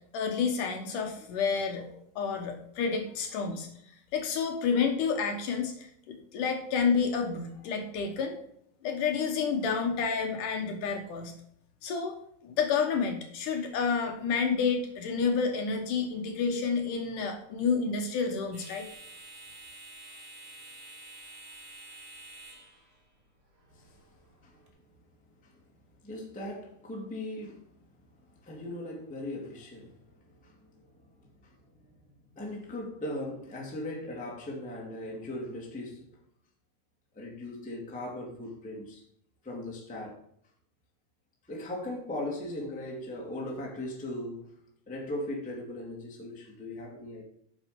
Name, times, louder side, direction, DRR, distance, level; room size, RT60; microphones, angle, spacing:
voice 1, 0.1-3.7 4.1-8.4 8.8-11.3 11.8-12.1 12.4-18.9, left 5 dB, 65° left, 2.5 m, -29 dB
sound 1, 13.4-24.7, right 2 dB, 30° right, 1.2 m, -52 dB
voice 2, 24.4-24.8 25.4-25.5 26.0-27.7 28.1-31.5 32.3-36.1 37.1-39.0 39.4-40.2 41.4-44.5 44.9-47.2, left 1 dB, 5° left, 1.3 m, -39 dB
9.6 x 6.4 x 5.1 m
omnidirectional pair, 4.3 m